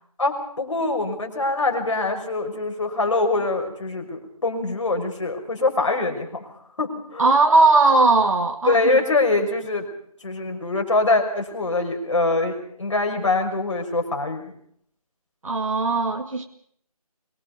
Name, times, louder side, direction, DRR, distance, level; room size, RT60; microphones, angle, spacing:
voice 1, 0.2-6.5 6.8-7.2 8.7-9.8 10.2-14.5, left 2 dB, 50° left, 3 dB, 5.9 m, -24 dB
voice 2, 7.2-8.8 15.4-16.4, right 3 dB, 60° right, 4 dB, 2.1 m, -18 dB
24.0 x 23.0 x 5.4 m, 0.63 s
figure-of-eight pair, 175°, 19 cm